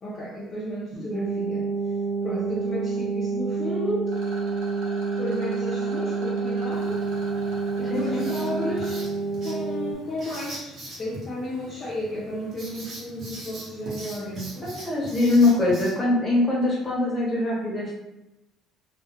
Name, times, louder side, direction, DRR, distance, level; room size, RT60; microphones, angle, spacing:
voice 1, 0.0-1.7 2.2-4.1 5.2-7.1 7.8-9.0 9.4-14.7, left 1 dB, 45° left, -7 dB, 0.5 m, -33 dB
sound 1, 1.1-9.9, right 4 dB, 10° right, 0.5 m, -28 dB
Rattle, 4.1-9.0, right 1 dB, 90° right, 0.7 m, -42 dB
Writing, 6.7-15.9, right 1 dB, 45° right, 0.9 m, -42 dB
voice 2, 7.9-8.3 14.6-17.9, left 2 dB, 20° left, -5 dB, 1.0 m, -22 dB
2.2 x 2.1 x 2.9 m, 0.94 s
cardioid pair, 105°, 0 cm